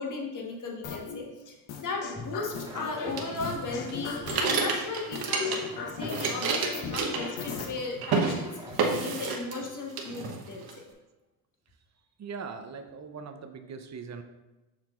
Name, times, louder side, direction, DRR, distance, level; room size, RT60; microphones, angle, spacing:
voice 1, 0.0-10.9, left 4 dB, 45° left, 0 dB, 1.4 m, -36 dB
sound 1, 0.8-1.2 1.7-3.1 3.4-4.6 5.1-7.7, left 6 dB, 80° left, 1.0 m, -37 dB
sound 2, 2.1-8.8, equal, 10° right, 1.8 m, -44 dB
sound 3, 3.2-5.8 6.0-7.7 8.0-8.3 8.8-9.7 10.0-10.7, right 4 dB, 60° right, 1.1 m, -29 dB
voice 2, 12.2-14.2, right 5 dB, 40° right, 7 dB, 0.7 m, -40 dB
7.2 x 5.8 x 2.5 m, 1.1 s
cardioid pair, 90°, 43 cm